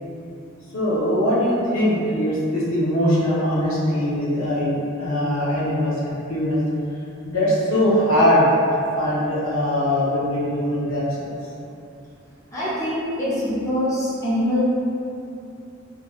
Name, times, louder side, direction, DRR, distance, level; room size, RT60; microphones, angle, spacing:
voice 1, 0.7-6.6 7.2-8.5 9.0-11.3, left 1 dB, 70° left, -8 dB, 0.6 m, -21 dB
voice 2, 12.5-14.6, left 1 dB, 15° left, -11 dB, 0.5 m, -24 dB
2.4 x 2.1 x 2.4 m, 2.6 s
head